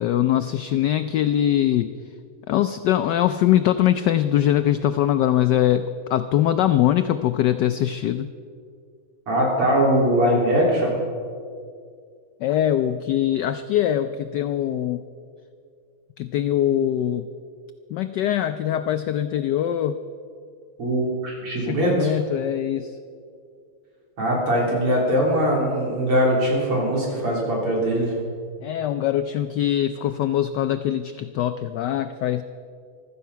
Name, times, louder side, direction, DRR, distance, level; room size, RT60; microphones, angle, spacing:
voice 1, 0.0-1.9 2.5-5.8 6.1-8.3 12.4-15.0 16.2-17.3 17.9-20.0 21.6-22.9 28.6-32.4, left 11 dB, 90° left, 10 dB, 0.9 m, -22 dB
voice 2, 9.3-10.9 20.8-22.1 24.2-28.1, equal, 90° right, -3 dB, 4.6 m, -21 dB
15.5 x 13.0 x 5.6 m, 2.3 s
omnidirectional pair, 2.4 m